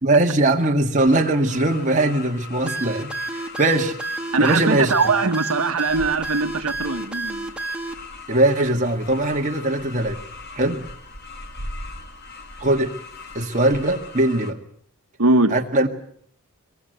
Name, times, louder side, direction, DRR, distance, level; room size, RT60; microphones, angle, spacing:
voice 1, 0.0-4.0 4.4-4.9 8.3-10.2 10.6-10.8 12.6-12.9 13.4-14.6 15.5-15.9, right 2 dB, 35° right, 2 dB, 2.0 m, -20 dB
sound 1, 1.0-14.5, left 5 dB, 45° left, 2.0 m, -41 dB
sound 2, 2.7-7.9, right 3 dB, 5° right, 1.8 m, -30 dB
voice 2, 4.3-7.5 15.2-15.6, right 3 dB, 75° right, 6 dB, 1.3 m, -21 dB
sound 3, 5.9-14.1, equal, 85° left, 5.4 m, -42 dB
23.5 x 21.5 x 8.1 m, 0.63 s
head